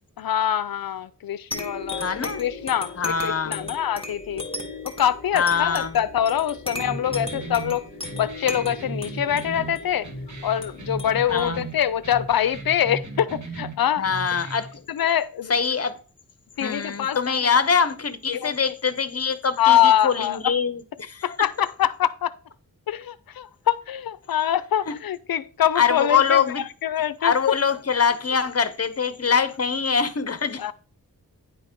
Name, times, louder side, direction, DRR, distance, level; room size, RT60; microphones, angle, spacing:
voice 1, 0.2-4.4 4.8-7.9 8.1-10.1 10.4-14.0 14.9-15.5 16.6-17.2 18.3-18.5 19.6-20.4 21.2-22.3 22.9-26.4 26.8-27.3 30.6-30.7, left 10 dB, 90° left, 0.5 m, -24 dB
sound 1, 1.5-12.6, left 2 dB, 15° left, 1.9 m, -37 dB
voice 2, 2.0-2.4 3.0-3.7 5.3-6.0 11.3-11.7 14.0-14.7 15.5-16.0 16.6-21.4 24.9-25.0 25.7-26.6 27.2-30.7, left 6 dB, 45° left, 0.9 m, -23 dB
sound 2, 6.8-14.8, right 2 dB, 55° right, 1.8 m, -36 dB
10.0 x 4.0 x 5.2 m
wide cardioid pair, 85°, 34 cm